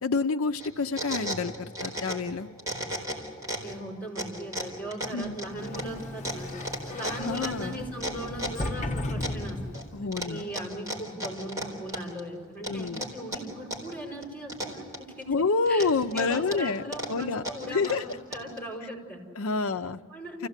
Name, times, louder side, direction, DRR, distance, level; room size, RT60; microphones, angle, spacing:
voice 1, 0.0-2.5 5.1-5.4 7.2-7.8 9.9-10.5 12.6-13.1 15.3-16.8 17.1-17.4 17.7-18.0 19.4-20.0 20.4-20.5, left 4 dB, 70° left, 7 dB, 0.6 m, -28 dB
sound 1, 0.6-2.3 2.6-3.7 4.1-8.7 9.2-9.8 10.1-12.2 12.6-13.9 14.2-15.2 15.7-18.6, equal, 15° right, 4.2 m, -35 dB
voice 2, 3.6-6.5 6.8-9.8 10.2-15.3 15.7-19.3 19.7-19.8 20.1-20.5, right 1 dB, 10° left, -1 dB, 5.2 m, -39 dB
Sliding door, 5.4-10.1, left 1 dB, 35° left, 1.2 m, -36 dB
29.5 x 16.0 x 8.2 m, 2.1 s
head